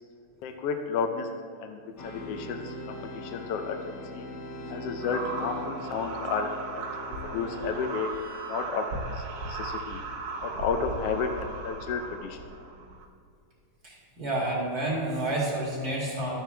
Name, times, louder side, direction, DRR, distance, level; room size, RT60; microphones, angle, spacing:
voice 1, 0.4-1.3 1.6-4.2 4.7-6.9 7.3-8.1 8.5-8.8 9.5-10.0 10.4-12.4, left 5 dB, 70° left, 5 dB, 1.5 m, -32 dB
sound 1, 2.0-8.5, left 2 dB, 50° left, 2.2 m, -41 dB
sound 2, 5.0-13.1, right 3 dB, 80° right, 2.3 m, -37 dB
voice 2, 13.8-16.4, right 1 dB, 30° right, -6 dB, 2.6 m, -29 dB
12.0 x 9.2 x 3.4 m, 2.3 s
omnidirectional pair, 3.4 m